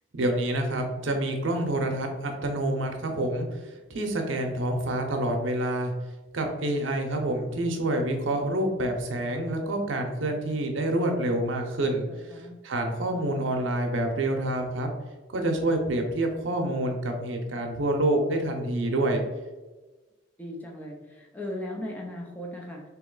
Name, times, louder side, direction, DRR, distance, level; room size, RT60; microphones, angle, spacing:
voice 1, 0.1-5.9 6.3-12.1 12.6-14.9 15.3-19.2, right 1 dB, 75° right, 3 dB, 0.7 m, -27 dB
voice 2, 12.1-12.6 20.4-22.8, left 1 dB, 10° left, -1 dB, 0.6 m, -37 dB
3.0 x 2.9 x 3.8 m, 1.2 s
head